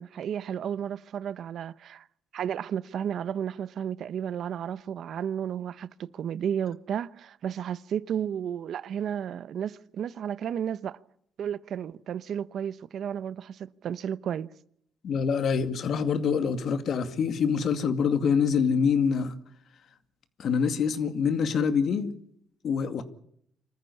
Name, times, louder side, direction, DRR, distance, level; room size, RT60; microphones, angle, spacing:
voice 1, 0.0-2.0 2.3-11.0 11.4-14.5, right 9 dB, 65° right, 0.9 m, -33 dB
voice 2, 15.0-19.4 20.4-22.1 22.6-23.0, left 6 dB, 65° left, 2.2 m, -25 dB
26.0 x 14.5 x 9.8 m
cardioid pair, 90°, 0 cm